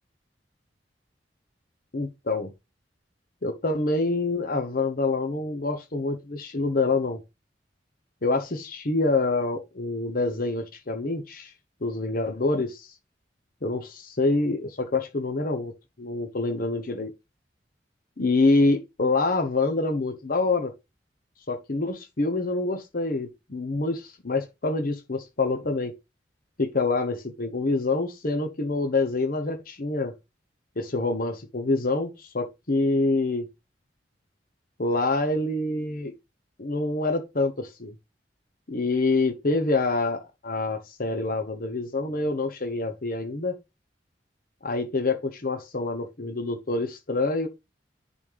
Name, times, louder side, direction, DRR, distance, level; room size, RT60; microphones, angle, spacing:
voice 1, 1.9-2.5 3.4-7.2 8.2-11.5 11.8-12.9 13.6-15.7 16.0-17.1 18.2-20.7 21.5-25.9 26.6-30.1 30.8-33.5 34.8-36.1 36.6-37.9 38.7-43.6 44.6-47.5, left 3 dB, 55° left, 1.0 m, -26 dB
11.0 x 4.2 x 3.4 m
head